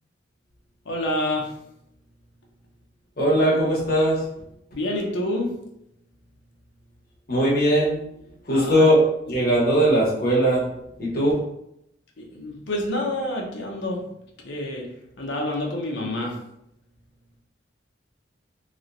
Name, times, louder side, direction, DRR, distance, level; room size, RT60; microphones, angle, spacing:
voice 1, 0.9-1.5 4.7-5.5 8.5-8.9 12.2-14.0 14.4-14.9 15.2-16.4, left 1 dB, 70° left, -1 dB, 0.7 m, -28 dB
voice 2, 3.2-4.2 7.3-8.0 8.5-10.6 11.0-11.3, right 1 dB, 50° left, -6 dB, 1.2 m, -19 dB
3.0 x 2.9 x 2.6 m, 0.80 s
head